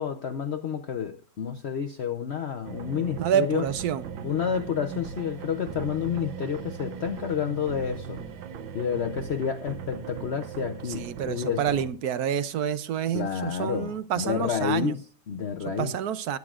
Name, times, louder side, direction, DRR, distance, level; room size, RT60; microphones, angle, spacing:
voice 1, 0.0-3.7 4.2-8.2 8.7-11.7 13.1-16.0, left 8 dB, 85° left, 0.5 m, -30 dB
sound 1, 2.6-11.9, right 7 dB, 80° right, 1.6 m, -39 dB
voice 2, 3.2-4.0 10.9-14.9 15.8-16.4, right 9 dB, 65° right, 1.1 m, -28 dB
21.5 x 9.5 x 2.4 m
omnidirectional pair, 2.1 m